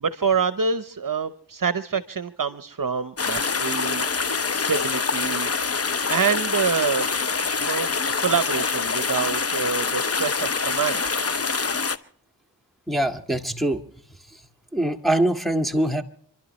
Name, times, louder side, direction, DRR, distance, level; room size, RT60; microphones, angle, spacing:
voice 1, 0.0-4.0 4.5-5.5 6.1-7.1 7.6-11.1, right 6 dB, 50° right, 12 dB, 0.9 m, -26 dB
sound 1, 3.2-12.0, left 5 dB, 35° left, 0.8 m, -25 dB
voice 2, 12.9-13.8 14.3-14.4 14.7-16.0, right 1 dB, ahead, 4 dB, 1.7 m, -23 dB
29.0 x 12.0 x 3.1 m, 0.64 s
cardioid pair, 45°, 43 cm